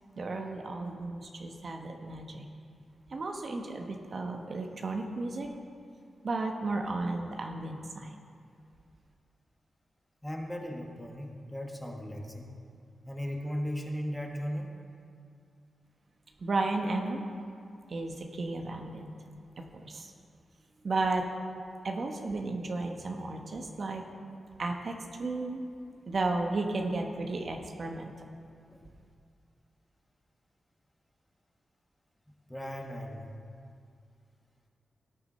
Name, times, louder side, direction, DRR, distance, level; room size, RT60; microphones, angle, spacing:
voice 1, 0.2-2.5 3.1-5.5 6.2-8.1 16.4-17.2 17.9-19.1 19.6-20.1 20.8-21.3 21.8-24.0 24.6-25.6 26.1-28.1, right 2 dB, 55° right, 3 dB, 1.0 m, -33 dB
voice 2, 10.2-12.5 13.1-14.7 28.7-28.8 32.5-33.3, equal, 10° left, 1 dB, 1.5 m, -37 dB
17.5 x 6.8 x 4.2 m, 2.3 s
cardioid pair, 75°, 0 cm